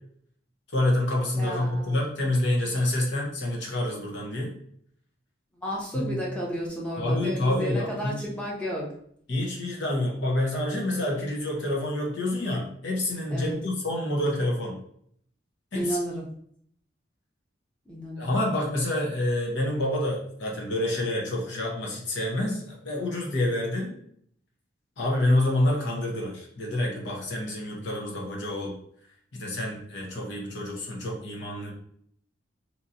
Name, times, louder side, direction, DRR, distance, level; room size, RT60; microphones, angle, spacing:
voice 1, 0.7-4.5 5.9-6.2 7.0-8.1 9.3-14.8 15.7-16.0 18.2-23.9 25.0-28.7 29.3-31.7, left 1 dB, 65° left, -1 dB, 0.9 m, -27 dB
voice 2, 1.4-2.1 5.6-8.9 13.3-13.5 15.7-16.2 17.9-18.3, equal, 5° left, -4 dB, 0.7 m, -32 dB
3.0 x 2.7 x 2.7 m, 0.65 s
head